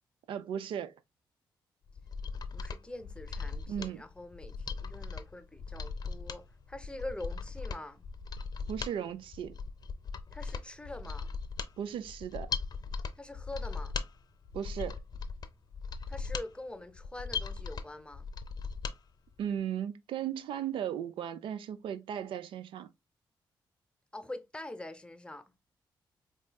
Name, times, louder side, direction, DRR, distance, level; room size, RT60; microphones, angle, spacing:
voice 1, 0.3-1.0 3.7-4.0 8.7-9.6 11.8-12.5 14.5-15.0 19.4-22.9, right 9 dB, 80° right, 0.4 m, -36 dB
Mechanisms, 1.9-19.0 19.3-19.4, left 5 dB, 50° left, 0.6 m, -39 dB
voice 2, 2.3-8.0 10.3-11.3 13.2-13.9 16.1-18.2 24.1-25.5, left 1 dB, 10° left, 0.7 m, -44 dB
4.6 x 2.7 x 2.2 m
cardioid pair, 65°, 9 cm